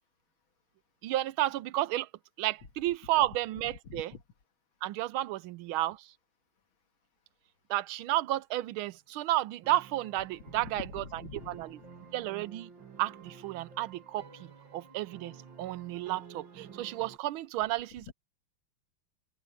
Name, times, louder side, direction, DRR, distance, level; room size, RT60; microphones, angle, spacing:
voice 1, 1.0-2.1 2.4-4.1 4.8-6.0 7.7-11.0 11.5-11.8 12.1-12.7 13.0-15.3 15.6-18.1, right 15 dB, 85° right, 1.4 m, -32 dB
voice 2, 3.8-4.2 10.5-11.9, left 6 dB, 75° left, 2.7 m, -45 dB
sound 1, 9.6-17.2, right 6 dB, 65° right, 3.9 m, -51 dB
omnidirectional pair, 2.3 m